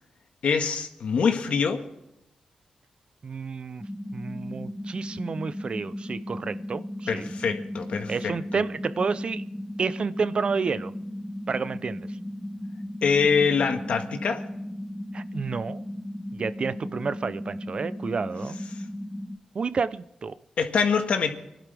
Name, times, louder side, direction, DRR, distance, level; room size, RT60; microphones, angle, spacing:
voice 1, 0.4-1.8 7.1-8.6 13.0-14.4 20.6-21.3, left 5 dB, 75° left, 1.7 m, -24 dB
voice 2, 3.2-3.8 4.1-7.3 8.1-9.4 9.8-10.9 11.5-12.0 15.1-15.8 16.3-18.6 19.5-20.4, right 5 dB, 55° right, 0.7 m, -30 dB
sound 1, 3.8-19.4, left 1 dB, 5° left, 0.9 m, -36 dB
25.0 x 11.5 x 3.5 m
cardioid pair, 70°, 2 cm